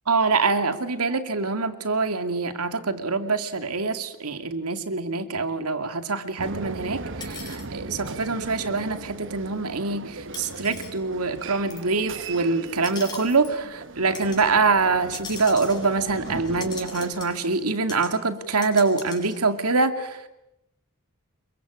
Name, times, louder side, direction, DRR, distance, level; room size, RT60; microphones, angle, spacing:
voice 1, 0.1-20.2, right 4 dB, 85° right, 8 dB, 2.5 m, -25 dB
sound 1, 6.4-17.7, right 3 dB, 60° right, 1.3 m, -38 dB
sound 2, 7.2-7.7 8.8-8.9 10.3-10.9 11.7-11.9 12.7-13.5 14.1-14.5 15.1-17.6 17.9-18.1 18.4-19.4, left 4 dB, 20° left, 4.9 m, -41 dB
28.0 x 23.0 x 8.6 m, 0.89 s
head